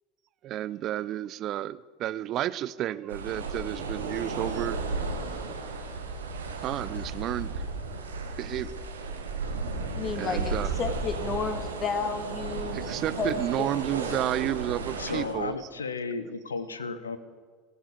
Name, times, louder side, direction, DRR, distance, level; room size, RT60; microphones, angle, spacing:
voice 1, 0.4-4.8 6.6-7.5 8.4-8.7 10.2-10.7 12.7-15.6, right 13 dB, 45° right, 18 dB, 0.4 m, -31 dB
sound 1, 3.1-15.3, right 3 dB, 75° right, 1.5 m, -34 dB
voice 2, 9.9-12.8 13.2-13.7, left 4 dB, 35° left, 9 dB, 1.8 m, -32 dB
voice 3, 15.0-17.2, left 4 dB, 80° left, 13 dB, 0.8 m, -34 dB
19.5 x 7.2 x 8.4 m, 1.5 s
figure-of-eight pair, 70°, 0 cm